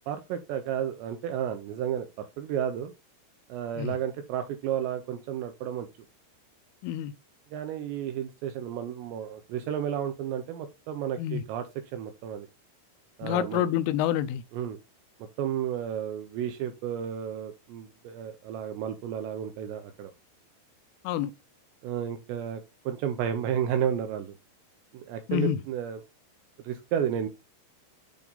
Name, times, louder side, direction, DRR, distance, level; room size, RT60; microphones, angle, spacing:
voice 1, 0.1-2.9 3.5-5.9 7.5-11.7 11.9-12.5 13.2-13.7 14.5-14.8 15.4-20.1 21.8-24.3 24.9-26.0 26.6-27.3, right 9 dB, 80° right, 2.5 m, -32 dB
voice 2, 6.8-7.1 11.2-11.4 13.2-14.4 21.0-21.3 25.3-25.6, left 11 dB, 90° left, 3.2 m, -27 dB
8.6 x 3.6 x 3.8 m
omnidirectional pair, 5.6 m